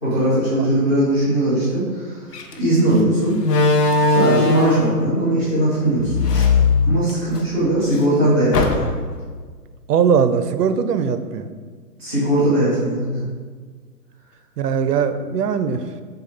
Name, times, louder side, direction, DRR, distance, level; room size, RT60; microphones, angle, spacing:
voice 1, 0.0-2.3 2.6-3.4 4.1-6.4 6.8-8.9 12.0-13.2, right 1 dB, 15° left, -10 dB, 0.7 m, -19 dB
Slam, 2.3-2.5 3.4-5.0 6.0-7.4 7.8-7.9 8.5-9.2, left 3 dB, 75° left, 0.7 m, -18 dB
voice 2, 9.9-11.5 14.6-15.8, right 7 dB, 75° right, 10 dB, 0.5 m, -20 dB
6.6 x 2.3 x 3.2 m, 1.5 s
hypercardioid pair, 170°, 48 cm